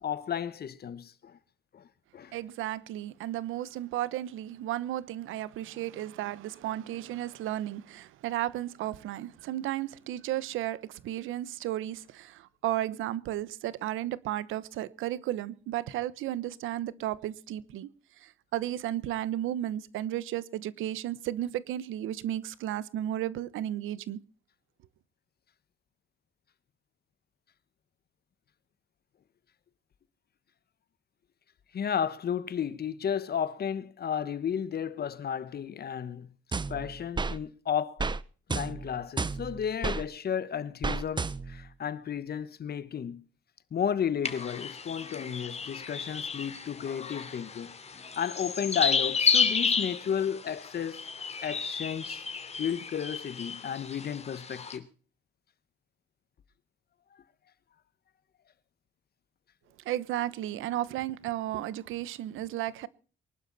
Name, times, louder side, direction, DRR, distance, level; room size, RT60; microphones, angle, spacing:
voice 1, 0.0-1.4 1.7-1.9 2.1-2.3 31.7-36.3 36.7-38.0 38.5-43.2 43.7-47.7 48.2-51.0 51.4-52.2 52.6-54.9, left 8 dB, 50° left, 1.4 m, -33 dB
voice 2, 2.3-17.9 18.2-24.2 59.8-62.9, right 13 dB, 90° right, 1.0 m, -34 dB
sound 1, 36.5-37.4 38.0-38.2 38.5-40.0 40.8-41.6, right 4 dB, 25° right, 0.9 m, -32 dB
sound 2, 44.2-54.8, left 5 dB, 35° left, 2.9 m, -32 dB
23.5 x 12.0 x 4.2 m
cardioid pair, 90°, 20 cm